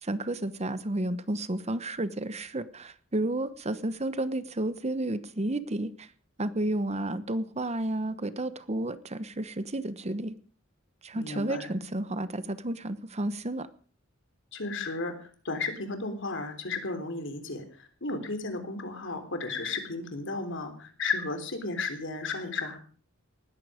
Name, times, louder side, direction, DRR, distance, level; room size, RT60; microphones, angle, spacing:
voice 1, 0.0-6.1 6.4-10.4 11.0-13.7, right 1 dB, 30° right, 14 dB, 1.0 m, -31 dB
voice 2, 11.1-11.7 14.5-22.8, left 3 dB, 65° left, 7 dB, 3.7 m, -34 dB
19.5 x 14.5 x 5.1 m, 0.42 s
head